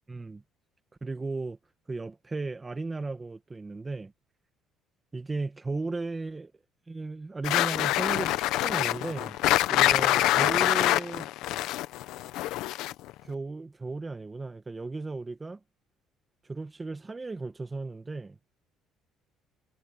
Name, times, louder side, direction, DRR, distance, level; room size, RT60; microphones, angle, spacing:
voice 1, 0.1-0.4 1.0-1.6 1.9-4.1 5.1-6.5 6.9-9.4 9.7-11.3 13.2-15.6 16.5-18.4, right 3 dB, 15° right, 1.7 m, -35 dB
sound 1, 7.4-13.1, left 15 dB, 80° left, 0.9 m, -25 dB
cardioid pair, 150°, 0 cm